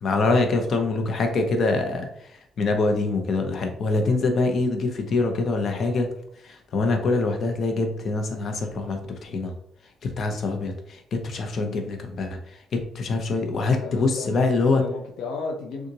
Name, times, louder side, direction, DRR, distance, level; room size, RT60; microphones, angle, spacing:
voice 1, 0.0-2.1 2.6-6.1 6.4-9.5 10.0-12.3 12.7-14.8, left 3 dB, 55° left, 4 dB, 0.8 m, -24 dB
voice 2, 13.6-15.9, left 4 dB, 85° left, 1 dB, 0.6 m, -34 dB
6.6 x 2.5 x 2.9 m, 0.71 s
cardioid pair, 90°, 0 cm